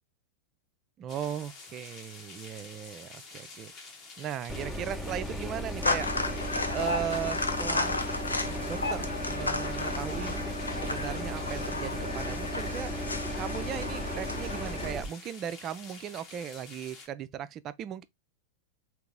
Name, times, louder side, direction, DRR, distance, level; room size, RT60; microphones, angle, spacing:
voice 1, 1.0-3.7 4.2-8.1 8.4-10.3 10.7-12.9 13.3-18.0, right 9 dB, 30° right, 0.4 m, -37 dB
sound 1, 1.1-17.1, left 4 dB, 30° left, 1.0 m, -49 dB
sound 2, 4.5-15.1, equal, 5° left, 0.8 m, -36 dB
sound 3, 5.8-14.9, left 3 dB, 80° left, 0.5 m, -33 dB
3.9 x 2.9 x 3.5 m
figure-of-eight pair, 90°, 0 cm